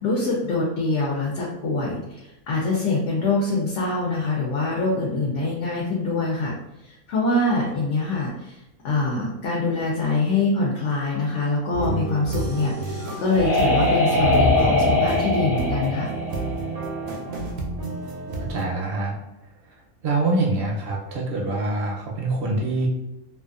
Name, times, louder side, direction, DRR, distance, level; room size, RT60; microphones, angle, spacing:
voice 1, 0.0-2.2 2.5-6.5 7.1-8.6 8.8-16.1, left 3 dB, 65° left, -3 dB, 0.8 m, -24 dB
sound 1, 11.7-18.7, right 3 dB, 85° right, 1.1 m, -31 dB
sound 2, 12.8-17.4, left 1 dB, 40° left, 1.0 m, -22 dB
voice 2, 18.5-19.2 20.0-22.9, right 2 dB, 55° right, -2 dB, 0.7 m, -25 dB
2.6 x 2.4 x 2.4 m, 0.94 s
omnidirectional pair, 1.5 m